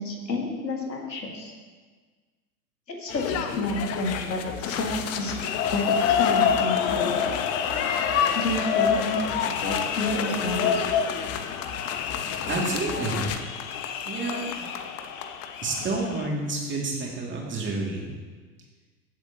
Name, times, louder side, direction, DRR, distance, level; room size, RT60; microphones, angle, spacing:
voice 1, 0.0-1.5 2.9-5.3 5.7-7.3 8.3-10.7, left 2 dB, 85° left, 1 dB, 2.0 m, -30 dB
sound 1, 3.1-13.4, left 7 dB, 30° left, 0.8 m, -32 dB
sound 2, 5.2-16.3, left 7 dB, 50° left, 1.0 m, -27 dB
voice 2, 12.5-13.3 14.0-14.4 15.6-18.1, right 2 dB, 25° right, -2 dB, 2.5 m, -29 dB
16.0 x 7.6 x 3.0 m, 1.4 s
figure-of-eight pair, 85°, 50 cm